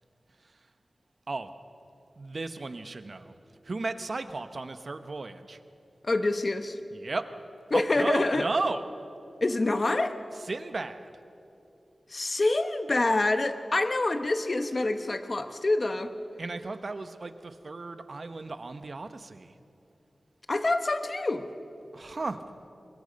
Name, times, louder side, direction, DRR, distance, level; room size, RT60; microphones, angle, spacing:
voice 1, 2.2-3.3 3.6-5.6 6.9-7.3 7.7-8.9 10.4-11.1 16.4-19.6 21.9-22.4, right 3 dB, 60° right, 10 dB, 1.0 m, -34 dB
voice 2, 6.0-6.8 7.7-8.5 9.4-10.2 12.1-16.1 20.5-21.5, left 2 dB, 50° left, 9 dB, 1.2 m, -26 dB
22.5 x 22.0 x 5.3 m, 2.7 s
cardioid pair, 50°, 0 cm